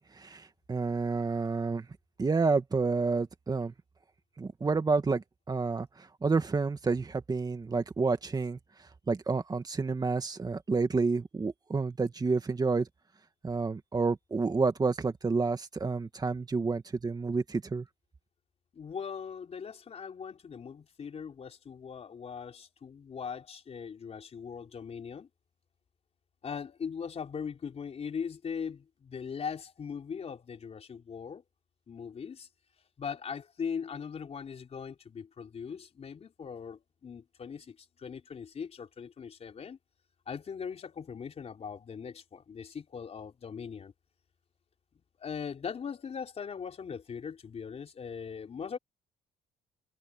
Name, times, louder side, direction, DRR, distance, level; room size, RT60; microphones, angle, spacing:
voice 1, 0.0-1.9 2.2-3.7 4.4-8.6 9.1-12.9 13.4-17.9, right 4 dB, 25° right, 2.2 m, -29 dB
voice 2, 18.7-25.3 26.4-31.4 31.9-32.5 33.0-39.8 40.3-43.9 45.2-48.8, left 6 dB, 40° left, 4.5 m, -40 dB
cardioid pair, 110°, 17 cm